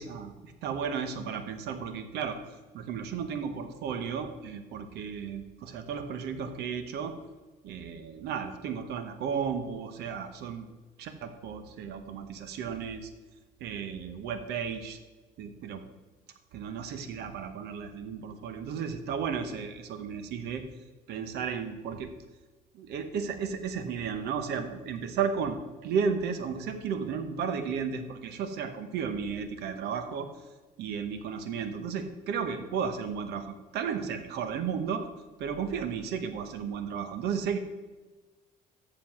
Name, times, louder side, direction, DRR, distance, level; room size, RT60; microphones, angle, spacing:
voice 1, 0.0-2.4 2.7-7.1 7.6-10.7 11.0-13.1 13.6-15.0 15.4-15.8 16.5-20.6 21.1-22.1 22.7-30.3 30.8-35.1 35.4-37.6, right 6 dB, 75° right, 10 dB, 1.0 m, -34 dB
7.6 x 6.8 x 6.0 m, 1.3 s
cardioid pair, 110°, 17 cm